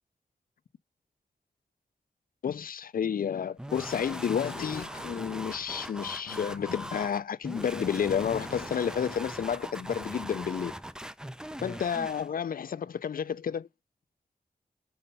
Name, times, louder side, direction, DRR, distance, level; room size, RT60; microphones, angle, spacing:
voice 1, 2.4-10.8 11.6-13.7, left 8 dB, 70° left, 0.4 m, -31 dB
sound 1, 3.6-12.3, equal, 5° right, 0.4 m, -40 dB
Animal, 4.2-5.3 6.1-7.2 8.0-9.0, left 6 dB, 85° left, 1.0 m, -43 dB
5.5 x 5.3 x 5.5 m
wide cardioid pair, 75°, 16 cm